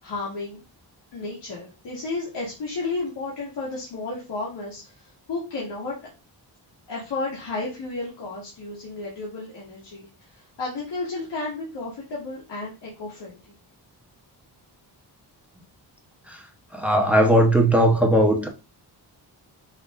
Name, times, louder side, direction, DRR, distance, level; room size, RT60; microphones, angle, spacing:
voice 1, 0.0-0.6 1.1-6.1 6.9-13.5, left 3 dB, 80° left, -5 dB, 1.9 m, -33 dB
voice 2, 16.7-18.5, equal, 5° right, 3 dB, 0.9 m, -18 dB
5.6 x 2.6 x 3.5 m, 0.30 s
wide cardioid pair, 140°, 42 cm